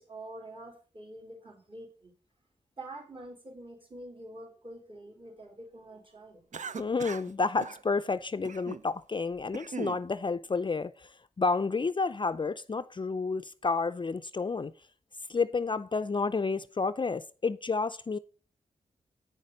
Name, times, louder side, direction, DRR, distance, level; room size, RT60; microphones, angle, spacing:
voice 1, 0.0-2.1 2.8-6.4, right 1 dB, 40° right, 4.0 m, -46 dB
Cough, 6.5-7.3 7.6-7.8 8.4-8.9 9.3-10.0, right 6 dB, 60° right, 0.6 m, -40 dB
voice 2, 6.8-14.7 15.3-18.2, left 4 dB, 35° left, 0.5 m, -30 dB
8.6 x 6.5 x 5.3 m
cardioid pair, 45°, 14 cm